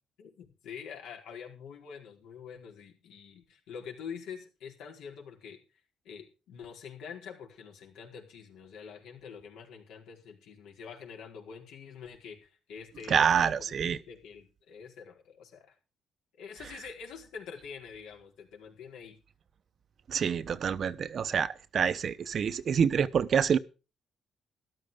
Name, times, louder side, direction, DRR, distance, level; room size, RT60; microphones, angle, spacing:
voice 1, 0.2-5.6 6.0-15.7 16.4-19.2, left 6 dB, 85° left, 4.6 m, -46 dB
voice 2, 13.1-14.0 20.1-23.6, right 7 dB, 55° right, 0.9 m, -27 dB
13.5 x 12.0 x 5.1 m
cardioid pair, 90°, 0 cm